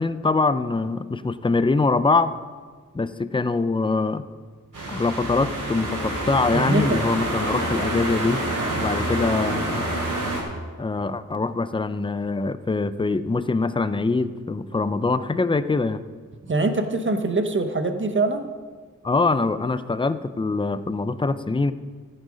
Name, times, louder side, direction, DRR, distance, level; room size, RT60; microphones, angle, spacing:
voice 1, 0.0-2.3 2.9-4.3 4.9-8.4 8.8-9.9 10.8-16.0 19.0-21.7, left 3 dB, 15° left, 13 dB, 0.4 m, -23 dB
sound 1, 4.7-10.4, right 1 dB, 75° right, 3.0 m, -27 dB
voice 2, 6.5-7.0 8.6-8.8 16.4-18.5, right 3 dB, 35° right, 7 dB, 0.9 m, -24 dB
14.0 x 6.5 x 5.1 m, 1.5 s
wide cardioid pair, 85°, 32 cm